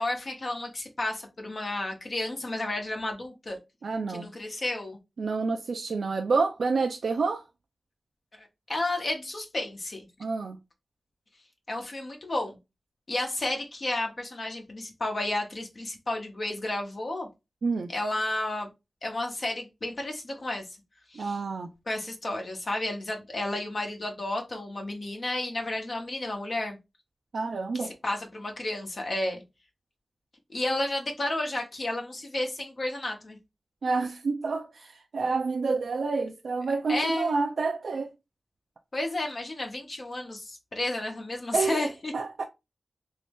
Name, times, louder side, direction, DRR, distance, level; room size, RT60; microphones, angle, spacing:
voice 1, 0.0-3.6 4.1-5.0 8.3-10.1 11.7-12.6 13.1-17.3 17.9-18.7 19.0-20.6 21.1-21.4 21.9-26.8 27.7-29.4 30.5-33.4 36.9-37.4 38.9-42.1, left 1 dB, 50° left, 0.8 m, -32 dB
voice 2, 3.8-4.3 5.2-7.4 10.2-10.6 17.6-17.9 21.1-21.7 27.3-27.9 33.8-38.1 41.5-42.4, right 4 dB, 85° right, 0.4 m, -28 dB
3.1 x 2.7 x 3.3 m
wide cardioid pair, 90°, 0 cm